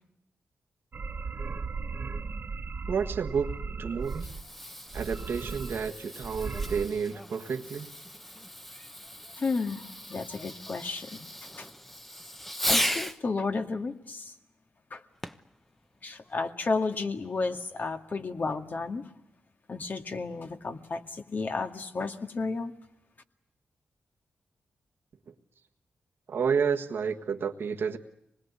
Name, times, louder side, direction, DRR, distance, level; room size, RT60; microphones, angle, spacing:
sound 1, 0.9-4.5 4.9-5.9 6.2-6.9, right 4 dB, 55° right, 1.0 m, -36 dB
voice 1, 2.9-3.5 3.8-4.3 4.9-7.9 25.3-25.4 26.3-28.0, right 6 dB, 70° right, 3 dB, 1.5 m, -30 dB
Fireworks, 3.9-13.2 15.2-15.6 16.3-16.4, equal, 5° left, 1.1 m, -36 dB
voice 2, 9.4-9.8 10.1-11.3 11.6-11.7 12.7-14.3 14.9-15.0 16.0-19.0 19.7-22.7, left 4 dB, 50° left, 6 dB, 2.1 m, -32 dB
25.0 x 20.5 x 9.7 m, 0.78 s
cardioid pair, 55°, 4 cm